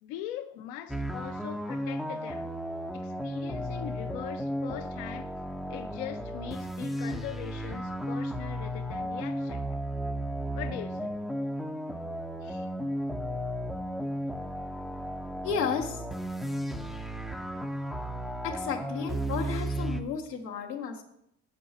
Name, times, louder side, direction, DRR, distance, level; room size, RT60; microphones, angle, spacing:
voice 1, 0.0-2.5 2.9-5.3 5.7-9.8 10.5-11.1 12.4-12.7, left 11 dB, 60° left, 0.6 m, -41 dB
sound 1, 0.9-20.0, equal, ahead, 0.4 m, -34 dB
voice 2, 15.4-16.0 18.4-21.0, left 6 dB, 85° left, 1.0 m, -32 dB
6.9 x 4.6 x 5.6 m
figure-of-eight pair, 60°, 47 cm